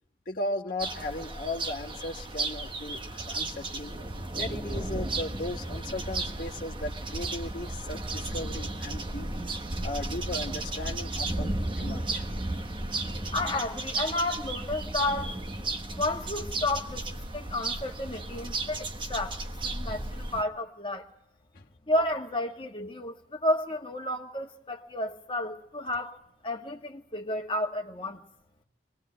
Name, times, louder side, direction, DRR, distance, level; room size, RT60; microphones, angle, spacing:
voice 1, 0.2-3.9 4.4-9.3 9.8-12.2 21.5-21.6, left 2 dB, 50° left, 1.6 m, -36 dB
sound 1, 0.8-20.4, right 2 dB, 25° right, 1.2 m, -34 dB
voice 2, 13.3-15.3 15.9-17.0 17.3-19.4 19.6-21.0 21.9-26.2 26.4-28.2, left 1 dB, 30° left, 1.8 m, -31 dB
24.5 x 20.0 x 8.7 m
head